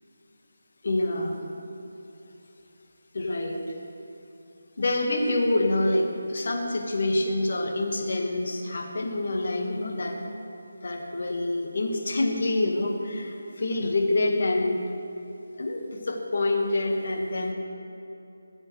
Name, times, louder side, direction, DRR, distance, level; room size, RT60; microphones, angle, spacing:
voice 1, 0.8-1.4 3.1-3.7 4.8-10.2 10.8-14.8 15.6-17.5, left 2 dB, 60° left, 2 dB, 1.5 m, -26 dB
17.5 x 7.6 x 3.2 m, 2.9 s
figure-of-eight pair, 165°, 0 cm